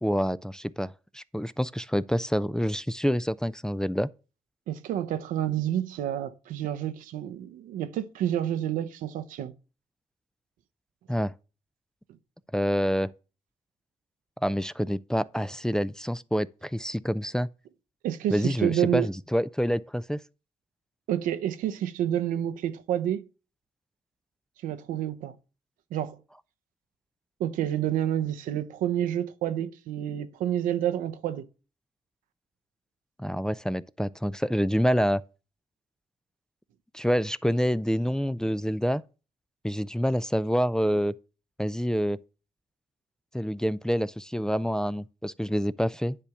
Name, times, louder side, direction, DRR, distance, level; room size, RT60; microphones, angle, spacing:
voice 1, 0.0-4.1 11.1-11.3 12.5-13.1 14.4-17.5 18.3-20.2 33.2-35.2 36.9-39.0 39.6-41.1 41.6-42.2 43.3-46.2, equal, 5° left, 0.5 m, -27 dB
voice 2, 4.7-9.5 18.0-19.1 21.1-23.2 24.6-25.3 25.9-26.2 27.4-31.5, right 11 dB, 85° right, 0.8 m, -29 dB
9.9 x 3.4 x 7.0 m
supercardioid pair, 55°, 14 cm